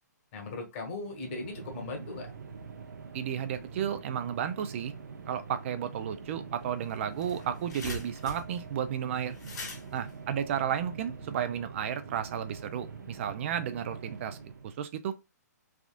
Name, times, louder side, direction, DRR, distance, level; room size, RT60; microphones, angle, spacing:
voice 1, 0.3-2.3, left 3 dB, 45° left, 1.2 m, -38 dB
sound 1, 1.0-14.8, right 5 dB, 80° right, 0.8 m, -45 dB
voice 2, 3.1-4.9 5.3-9.4 9.9-14.4 14.6-15.1, right 9 dB, 45° right, 0.4 m, -33 dB
sound 2, 6.6-6.7 7.0-11.2, left 2 dB, 75° left, 1.5 m, -43 dB
3.5 x 2.3 x 2.4 m
hypercardioid pair, 140°, 9 cm